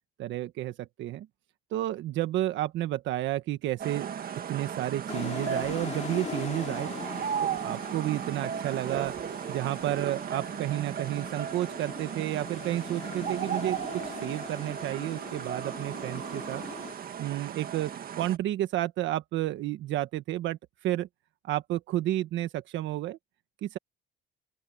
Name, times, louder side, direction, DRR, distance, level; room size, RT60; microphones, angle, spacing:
voice 1, 0.2-1.3 1.7-4.1 4.5-6.9 7.4-9.1 9.5-13.8 14.0-16.6 17.2-21.1 21.4-23.2 23.6-23.8, right 14 dB, 75° right, 1.5 m, -31 dB
sound 1, 3.8-18.4, right 8 dB, 50° right, 1.9 m, -36 dB
sound 2, 5.1-16.9, left 6 dB, 35° left, 2.5 m, -42 dB
open air
cardioid pair, 100°, 20 cm